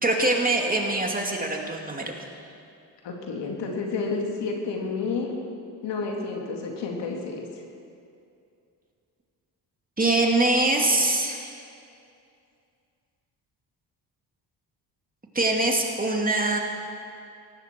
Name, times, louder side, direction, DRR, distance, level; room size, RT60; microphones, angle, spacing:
voice 1, 0.0-2.1 10.0-11.6 15.3-16.6, right 2 dB, 20° right, 1 dB, 2.7 m, -23 dB
voice 2, 3.0-5.4 5.8-7.4, left 4 dB, 75° left, 0 dB, 2.7 m, -30 dB
18.5 x 14.5 x 4.7 m, 2.5 s
supercardioid pair, 65°, 42 cm